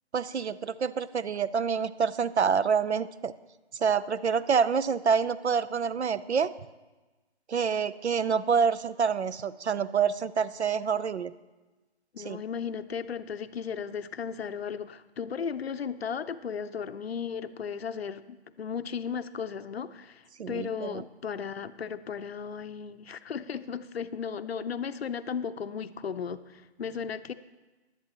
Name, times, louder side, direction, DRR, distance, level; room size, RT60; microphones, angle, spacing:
voice 1, 0.1-3.3 3.8-6.5 7.5-11.3 12.2-12.4 20.4-21.0, right 6 dB, 75° right, 16 dB, 0.7 m, -27 dB
voice 2, 12.1-27.3, left 6 dB, 65° left, 12 dB, 0.6 m, -35 dB
16.5 x 11.0 x 3.0 m, 1.2 s
figure-of-eight pair, 160°, 34 cm